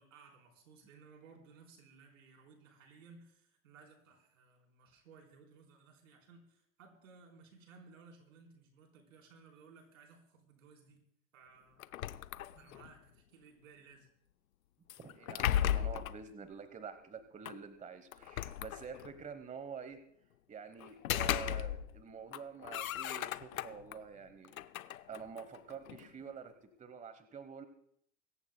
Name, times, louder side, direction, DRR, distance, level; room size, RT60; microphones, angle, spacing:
voice 1, 0.0-11.0 11.3-14.1 25.9-26.1, right 4 dB, 75° right, 2 dB, 4.2 m, -59 dB
sound 1, 11.8-12.9 14.9-16.2 17.4-17.6 18.1-19.2 20.8-22.0 22.3-24.0 24.4-26.1, left 11 dB, 85° left, 0.6 m, -36 dB
voice 2, 15.0-20.0 20.5-24.6 25.1-27.7, right 6 dB, 20° right, 10 dB, 1.1 m, -48 dB
24.5 x 14.5 x 2.3 m, 0.70 s
hypercardioid pair, 90°, 41 cm